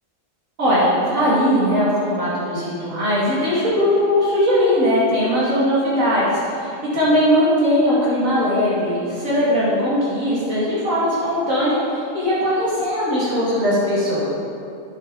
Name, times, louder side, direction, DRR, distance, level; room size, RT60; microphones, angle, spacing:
voice 1, 0.6-14.3, equal, 90° right, -9 dB, 2.6 m, -19 dB
9.5 x 7.8 x 3.9 m, 2.5 s
omnidirectional pair, 1.3 m